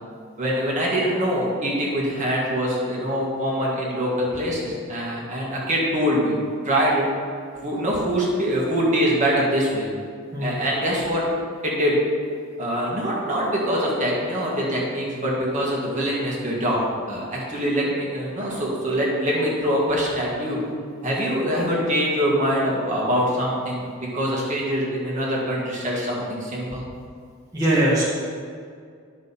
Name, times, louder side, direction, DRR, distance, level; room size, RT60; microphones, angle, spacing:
voice 1, 0.4-6.4 6.6-7.1 7.6-9.9 10.4-11.2 11.6-12.0 12.6-16.8 17.1-20.6 21.0-26.8, equal, 35° right, -5 dB, 1.9 m, -24 dB
voice 2, 27.5-28.0, right 1 dB, 15° right, -8 dB, 1.7 m, -20 dB
11.0 x 6.3 x 4.2 m, 2.2 s
head